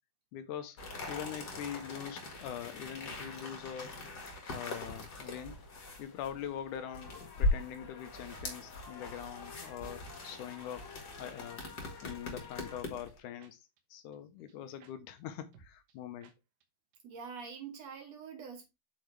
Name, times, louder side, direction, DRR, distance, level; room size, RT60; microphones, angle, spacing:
voice 1, 0.3-0.8 1.1-4.0 4.5-5.6 6.0-11.7 12.0-13.6 13.9-16.3, left 10 dB, 75° left, 2.2 m, -43 dB
sound 1, 0.8-13.2, left 2 dB, 40° left, 1.8 m, -40 dB
sound 2, 4.9-12.8, left 6 dB, 55° left, 1.6 m, -53 dB
sound 3, 9.2-9.3 9.9-10.1 10.6-10.7 11.8-12.1 12.7-13.8 14.1-14.2 14.5-14.6 14.8-14.9 15.2-15.3 15.5-16.0 16.2-16.3 16.6-16.7 16.9-17.0, right 5 dB, 85° right, 2.7 m, -59 dB
voice 2, 17.0-18.7, right 6 dB, 60° right, 2.0 m, -45 dB
8.0 x 4.8 x 3.2 m
omnidirectional pair, 3.8 m